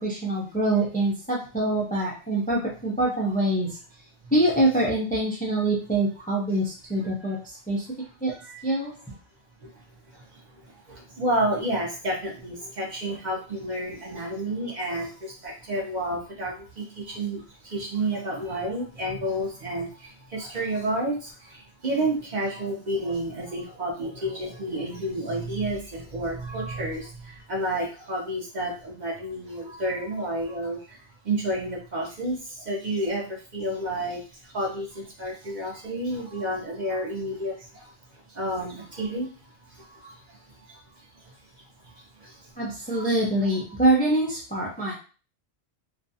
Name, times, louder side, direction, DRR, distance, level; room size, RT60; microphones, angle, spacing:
voice 1, 0.0-3.8 4.3-7.9 8.2-8.3 8.6-9.0 42.6-44.9, right 1 dB, 10° left, -3 dB, 0.4 m, -25 dB
voice 2, 9.6-41.3 41.8-42.5 42.9-43.0, right 1 dB, 45° right, -2 dB, 0.7 m, -31 dB
2.5 x 2.2 x 2.7 m, 0.36 s
omnidirectional pair, 1.1 m